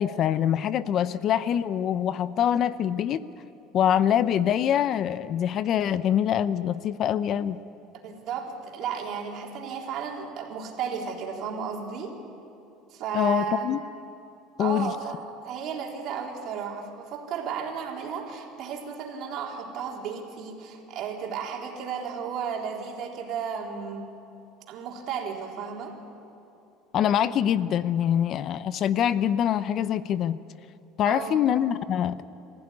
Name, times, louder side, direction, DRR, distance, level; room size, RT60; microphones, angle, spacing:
voice 1, 0.0-3.2 3.7-7.6 13.1-13.8 14.6-14.9 26.9-30.4 31.0-32.2, left 10 dB, 45° left, 15 dB, 0.6 m, -24 dB
voice 2, 8.0-12.1 12.9-13.7 14.6-24.0 24.7-26.0 31.1-31.4, right 7 dB, 55° right, 0 dB, 3.8 m, -34 dB
25.0 x 15.5 x 9.8 m, 2.9 s
cardioid pair, 140°, 0 cm